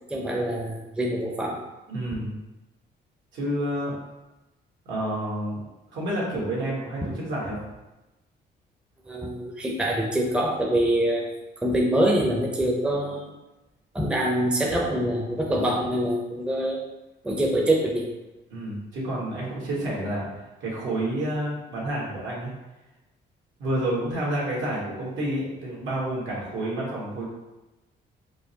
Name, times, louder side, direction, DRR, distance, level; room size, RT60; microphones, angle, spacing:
voice 1, 0.1-1.6 9.1-11.3 11.6-13.3 13.9-16.8 17.2-18.1, right 1 dB, 5° right, -1 dB, 0.5 m, -25 dB
voice 2, 1.9-2.4 3.3-3.9 4.8-5.6 5.9-7.6 18.5-20.3 20.6-22.5 23.6-27.3, right 1 dB, 75° right, -5 dB, 1.4 m, -29 dB
4.5 x 2.1 x 2.8 m, 1.0 s
cardioid pair, 90°, 20 cm